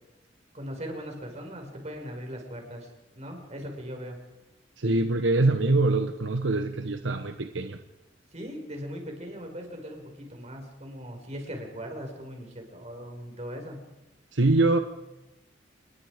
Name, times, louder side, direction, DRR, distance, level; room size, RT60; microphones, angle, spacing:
voice 1, 0.5-2.9 3.2-4.2 8.3-13.8, equal, 35° right, 2 dB, 5.7 m, -39 dB
voice 2, 4.8-7.8 14.3-14.8, right 2 dB, 80° right, 8 dB, 1.1 m, -24 dB
29.5 x 21.0 x 5.1 m, 0.99 s
head